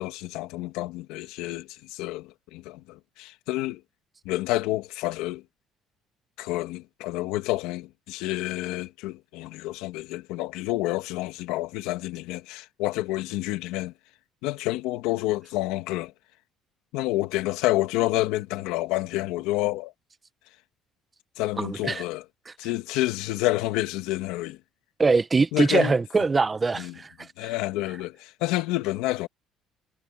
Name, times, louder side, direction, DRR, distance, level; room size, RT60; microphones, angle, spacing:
voice 1, 0.0-3.8 4.3-5.4 6.4-13.9 14.4-16.1 16.9-19.9 21.4-22.3 22.6-24.6 25.5-26.3 26.7-27.0 27.4-29.3, left 17 dB, 85° left, 1.7 m, -29 dB
voice 2, 21.6-22.0 25.0-27.1, right 4 dB, 25° right, 0.9 m, -22 dB
cardioid pair, 100°, 0 cm